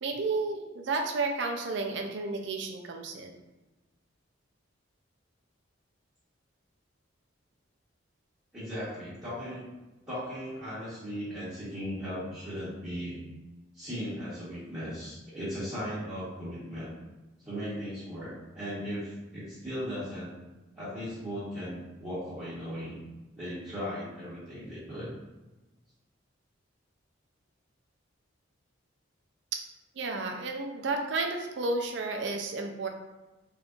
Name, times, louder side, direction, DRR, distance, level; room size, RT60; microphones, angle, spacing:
voice 1, 0.0-3.3 30.0-32.9, right 3 dB, 65° right, 3 dB, 0.4 m, -32 dB
voice 2, 8.5-9.6 10.1-13.2 13.7-16.9 17.4-20.3 20.7-23.0 23.4-25.1, equal, 15° right, -15 dB, 1.1 m, -37 dB
3.6 x 2.7 x 2.4 m, 1.1 s
head